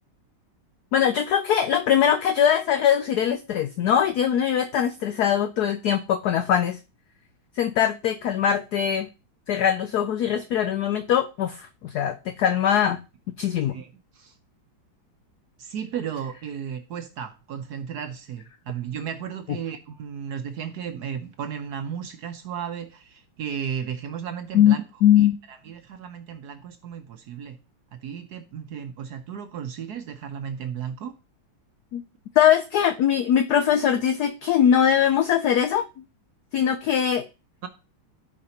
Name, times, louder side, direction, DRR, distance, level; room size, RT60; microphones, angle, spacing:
voice 1, 0.9-6.8 7.6-9.1 9.5-13.0 13.4-13.7 24.5-25.4 31.9-32.0 32.4-35.9 36.5-37.3, left 9 dB, 80° left, 0.8 m, -21 dB
voice 2, 13.7-14.3 15.6-24.8 25.2-27.6 27.9-31.1 37.6-37.7, right 8 dB, 65° right, 1.0 m, -34 dB
14.5 x 4.9 x 2.9 m
omnidirectional pair, 2.2 m